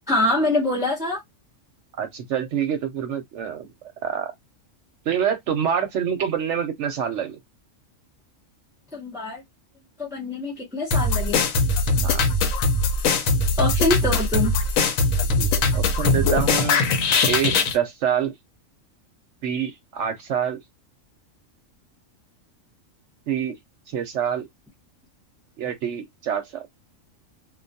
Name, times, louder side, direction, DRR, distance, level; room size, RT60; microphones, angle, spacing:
voice 1, 0.1-1.2 8.9-9.4 10.0-11.4 13.6-14.5, left 2 dB, 5° right, 0.5 m, -24 dB
voice 2, 2.0-3.7 4.0-4.3 5.1-7.4 12.0-12.2 15.2-16.8 17.2-18.3 19.4-20.6 23.3-23.6 23.9-24.5 25.6-26.7, right 8 dB, 65° right, 0.8 m, -26 dB
sound 1, 10.9-17.8, left 3 dB, 80° left, 1.0 m, -21 dB
2.3 x 2.2 x 2.6 m
omnidirectional pair, 1.4 m